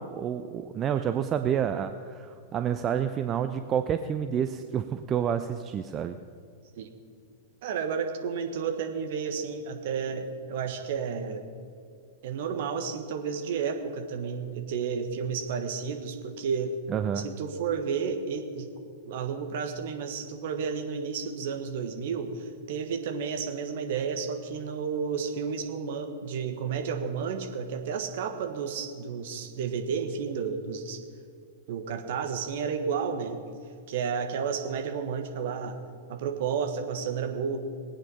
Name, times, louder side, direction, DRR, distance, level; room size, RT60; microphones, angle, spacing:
voice 1, 0.0-6.2 16.9-17.3, right 8 dB, 30° right, 9 dB, 0.5 m, -29 dB
voice 2, 7.6-11.4 12.2-16.7 17.1-18.7 19.0-31.0 31.7-33.4 33.9-35.8 36.1-37.6, right 6 dB, 55° right, 6 dB, 1.6 m, -32 dB
19.5 x 8.9 x 5.6 m, 2.3 s
figure-of-eight pair, 100°, 0 cm